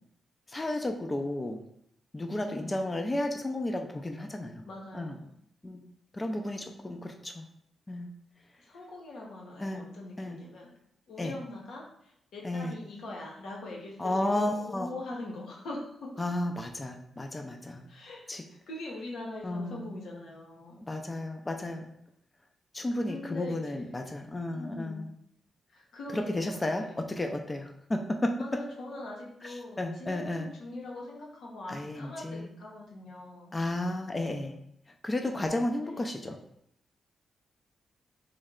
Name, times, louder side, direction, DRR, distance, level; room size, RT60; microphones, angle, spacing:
voice 1, 0.5-1.6 2.1-4.7 4.9-5.2 5.6-5.8 6.1-7.5 7.9-8.1 9.6-9.9 10.2-10.4 11.2-11.4 12.4-12.8 14.0-14.9 16.2-17.8 18.3-18.4 19.4-19.9 20.9-21.9 22.7-25.1 26.1-28.3 29.4-30.5 31.7-32.5 33.5-34.6 35.0-36.4, left 1 dB, 25° left, 4 dB, 0.5 m, -33 dB
voice 2, 2.4-2.8 4.6-5.2 8.6-10.7 11.1-16.1 17.9-18.2 18.7-20.8 23.0-23.9 24.5-25.0 25.7-26.9 28.4-33.6 35.7-36.3, left 2 dB, 80° left, -2 dB, 1.1 m, -42 dB
3.2 x 3.1 x 3.7 m, 0.73 s
cardioid pair, 85°, 0 cm